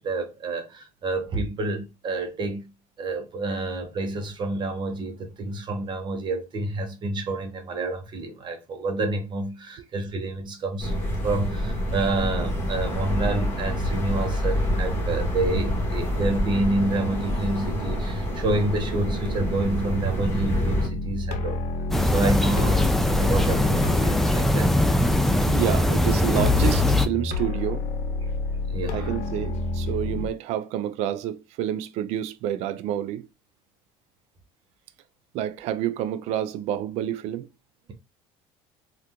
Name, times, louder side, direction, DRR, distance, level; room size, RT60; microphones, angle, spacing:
voice 1, 0.0-2.7 3.0-10.9 11.2-21.6 22.0-24.7 28.7-29.1, right 2 dB, 40° right, 0.9 m, -29 dB
sound 1, 10.8-20.9, equal, 20° left, 1.6 m, -27 dB
sound 2, 20.4-30.3, left 3 dB, 65° left, 0.7 m, -28 dB
sound 3, 21.9-27.1, left 1 dB, ahead, 0.3 m, -22 dB
voice 2, 25.4-27.8 28.9-33.3 35.3-37.5, right 11 dB, 65° right, 0.4 m, -28 dB
3.3 x 2.4 x 2.9 m
cardioid pair, 115°, 12 cm